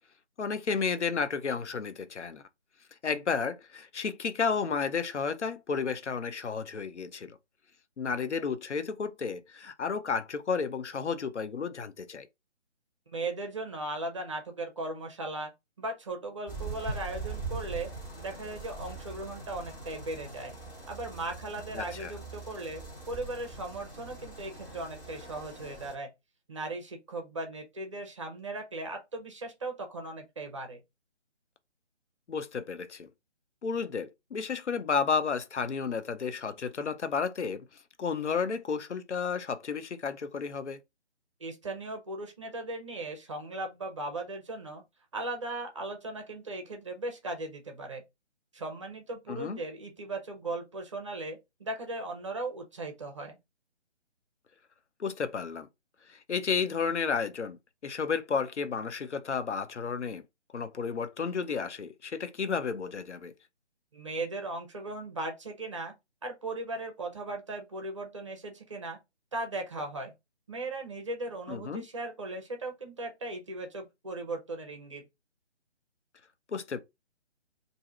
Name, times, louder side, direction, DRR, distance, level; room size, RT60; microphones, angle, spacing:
voice 1, 0.4-2.4 3.0-7.4 8.0-12.3 21.7-22.1 32.3-33.1 33.6-37.6 38.0-40.8 49.3-49.6 55.0-55.7 56.1-57.6 57.8-60.2 60.5-63.3 71.5-71.8 76.5-76.8, left 5 dB, 75° left, 0.7 m, -32 dB
voice 2, 13.1-15.5 15.8-17.9 18.2-20.5 20.9-26.1 26.5-30.8 41.4-44.8 45.1-48.0 48.5-53.4 63.9-65.9 66.2-69.0 69.3-70.1 70.5-75.0, right 2 dB, 25° right, 0.6 m, -37 dB
sound 1, 16.5-25.9, right 3 dB, 15° left, 1.3 m, -42 dB
2.7 x 2.4 x 4.2 m
figure-of-eight pair, 150°, 35 cm